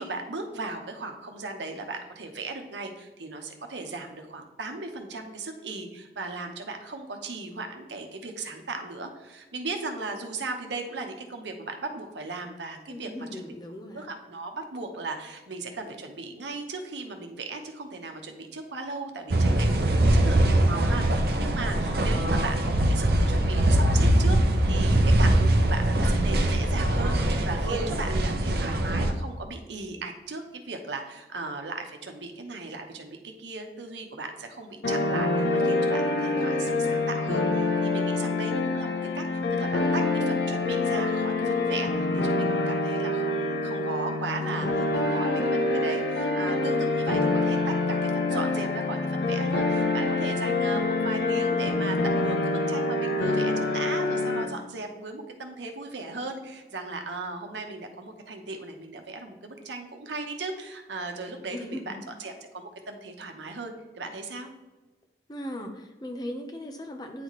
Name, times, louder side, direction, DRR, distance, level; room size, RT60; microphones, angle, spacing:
voice 1, 0.0-13.5 13.9-44.8 45.1-64.5, right 3 dB, 85° right, 4 dB, 0.9 m, -37 dB
voice 2, 12.9-14.1 43.5-43.8 44.1-45.2 61.5-62.0 65.3-67.2, left 1 dB, 25° left, 4 dB, 0.7 m, -39 dB
sound 1, 19.3-29.1, right 1 dB, 60° right, 0.7 m, -22 dB
sound 2, 34.8-54.4, left 2 dB, 70° left, 0.8 m, -26 dB
9.1 x 4.1 x 3.1 m, 1.2 s
head